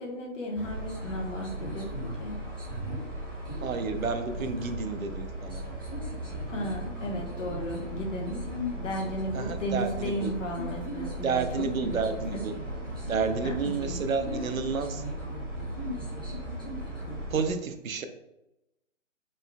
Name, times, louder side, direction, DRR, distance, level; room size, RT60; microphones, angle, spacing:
voice 1, 0.0-2.4 6.5-8.4 8.8-12.4 13.4-14.0, equal, 65° left, 1 dB, 1.2 m, -35 dB
sound 1, 0.5-17.5, equal, 15° right, 0.6 m, -36 dB
voice 2, 3.6-5.6 9.3-10.3 11.2-12.5 13.1-15.0 17.3-18.1, right 5 dB, 90° right, 8 dB, 0.7 m, -30 dB
4.1 x 3.8 x 2.2 m, 0.91 s
hypercardioid pair, 170°, 40 cm